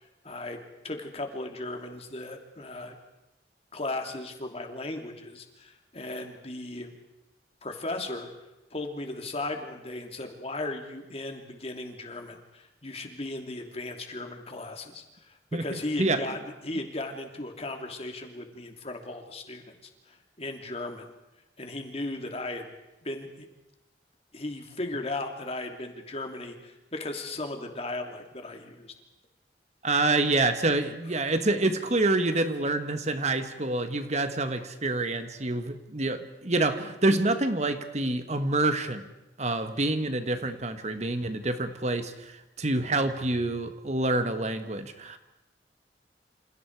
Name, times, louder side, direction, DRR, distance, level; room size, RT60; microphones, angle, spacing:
voice 1, 0.2-0.6 0.8-3.0 3.7-6.9 7.6-8.3 8.7-19.8 20.1-21.1 21.6-22.7 23.0-23.5 24.3-28.9, left 2 dB, 35° left, 4 dB, 3.0 m, -36 dB
voice 2, 15.5-16.2 29.8-39.0 39.4-45.2, right 2 dB, 40° right, 9 dB, 1.5 m, -27 dB
28.5 x 27.5 x 4.8 m, 0.98 s
head